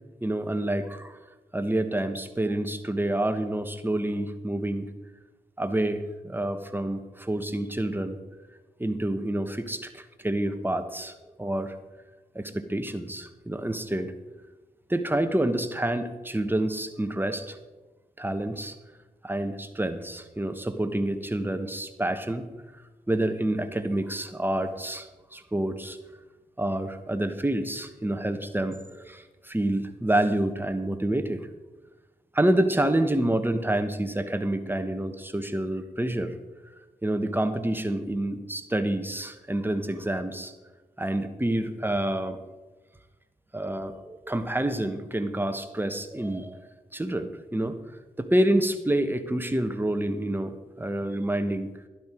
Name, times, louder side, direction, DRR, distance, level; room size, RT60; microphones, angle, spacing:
voice 1, 0.2-1.2 1.5-4.9 5.6-8.2 8.8-11.7 12.3-14.1 14.9-17.6 18.2-18.7 19.2-22.4 23.1-26.0 26.6-31.5 32.3-36.3 37.0-40.5 41.0-42.4 43.5-46.6 46.9-47.7 48.2-51.7, right 1 dB, 10° right, 8 dB, 1.3 m, -28 dB
12.0 x 10.5 x 4.6 m, 1.2 s
cardioid pair, 40°, 16 cm